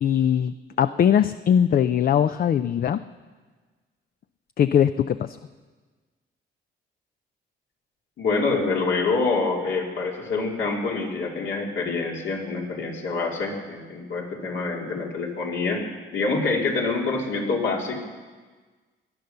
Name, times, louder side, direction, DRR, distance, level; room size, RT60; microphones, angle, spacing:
voice 1, 0.0-3.0 4.6-5.4, left 9 dB, 50° left, 12 dB, 0.5 m, -21 dB
voice 2, 8.2-15.9 16.1-18.0, left 3 dB, 75° left, -1 dB, 3.0 m, -26 dB
18.5 x 10.5 x 6.7 m, 1.4 s
cardioid pair, 90°, 20 cm